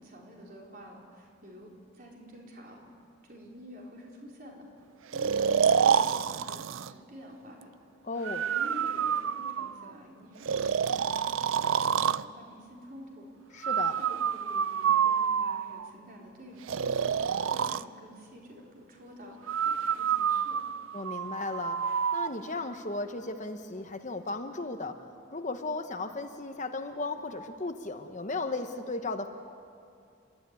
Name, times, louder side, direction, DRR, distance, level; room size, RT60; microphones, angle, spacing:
voice 1, 0.0-2.8 3.2-4.6 5.1-7.7 8.5-13.3 14.0-20.6, equal, 45° right, -2 dB, 4.3 m, -49 dB
Breathing, 5.1-6.9 8.2-9.9 10.5-12.3 13.6-15.9 16.7-17.8 19.5-22.3, right 7 dB, 85° right, 0.5 m, -28 dB
voice 2, 8.0-8.5 13.5-14.0 20.9-21.8 22.1-25.0 25.3-29.3, left 3 dB, 40° left, 7 dB, 1.0 m, -35 dB
29.5 x 13.0 x 9.7 m, 2.5 s
head